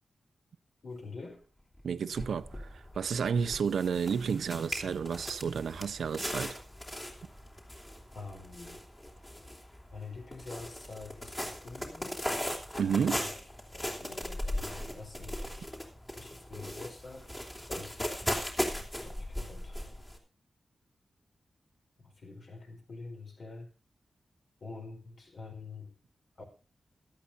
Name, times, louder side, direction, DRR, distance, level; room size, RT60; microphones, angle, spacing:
voice 1, 0.8-1.4 8.1-8.8 9.9-12.3 12.9-13.3 13.7-15.4 16.2-18.1 19.0-19.8 22.0-23.7 24.6-26.0 26.4-26.5, left 3 dB, 50° left, 4.6 m, -46 dB
sound 1, 1.8-1.9 2.1-20.2, left 1 dB, 15° left, 3.2 m, -38 dB
voice 2, 1.8-6.6 12.8-13.2, right 6 dB, 85° right, 0.9 m, -31 dB
17.0 x 13.0 x 2.7 m
wide cardioid pair, 165°, 0 cm